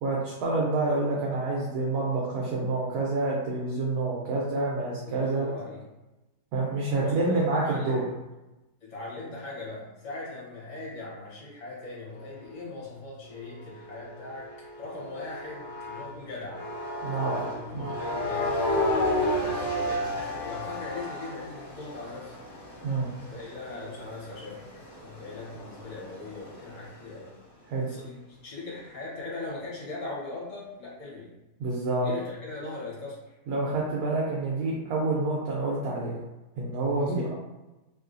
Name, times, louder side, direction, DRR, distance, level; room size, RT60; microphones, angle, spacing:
voice 1, 0.0-5.5 6.5-8.0 17.0-17.4 17.7-17.9 22.8-23.1 27.7-27.9 31.6-32.1 33.5-36.2 36.6-37.3, right 3 dB, 75° right, -4 dB, 1.1 m, -28 dB
voice 2, 5.0-5.8 6.9-8.0 8.8-16.7 17.1-22.3 23.3-24.7 25.0-27.3 27.8-31.3 32.0-33.4 37.0-37.1, left 3 dB, 55° left, -6 dB, 1.4 m, -40 dB
sound 1, 13.2-16.1 16.5-26.9, left 1 dB, 35° left, 0.9 m, -33 dB
3.0 x 2.7 x 2.5 m, 1.0 s
omnidirectional pair, 1.7 m